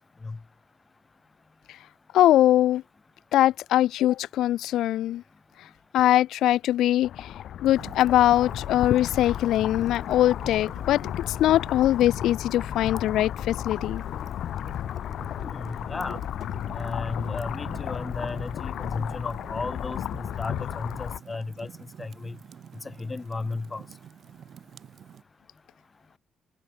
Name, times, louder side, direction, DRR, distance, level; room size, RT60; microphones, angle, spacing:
voice 1, 2.1-2.8 3.3-5.2 5.9-7.3 7.6-14.0, left 13 dB, 90° left, 0.7 m, -22 dB
sound 1, 7.0-21.2, left 10 dB, 60° left, 2.6 m, -34 dB
Fire, 7.6-25.2, right 8 dB, 45° right, 4.5 m, -48 dB
voice 2, 15.4-16.2 16.7-21.7 22.0-22.4 22.8-23.8, left 3 dB, 15° left, 1.8 m, -34 dB
cardioid pair, 175°, 0 cm